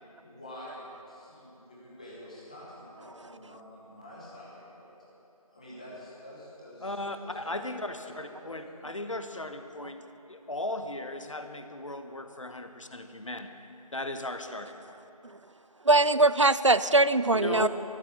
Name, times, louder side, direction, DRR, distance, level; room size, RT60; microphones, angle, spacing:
voice 1, 0.2-5.0 5.5-7.6 8.0-8.1 8.4-8.5, left 1 dB, 10° left, -7 dB, 1.6 m, -47 dB
voice 2, 6.8-10.0 10.3-13.5 13.9-15.0 17.3-17.7, left 2 dB, 55° left, 7 dB, 1.1 m, -37 dB
voice 3, 15.9-17.7, right 2 dB, 50° right, 15 dB, 0.4 m, -21 dB
14.0 x 11.0 x 7.2 m, 3.0 s
figure-of-eight pair, 170°, 19 cm